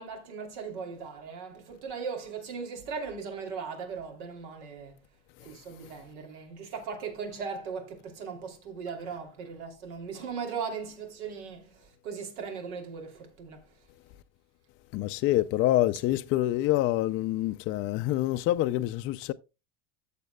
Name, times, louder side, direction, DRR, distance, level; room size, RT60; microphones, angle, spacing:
voice 1, 0.0-4.9 5.4-13.9, right 5 dB, 85° right, 2.9 m, -38 dB
voice 2, 14.9-19.3, left 15 dB, 40° left, 0.4 m, -26 dB
13.5 x 7.3 x 2.2 m
supercardioid pair, 135°, 34 cm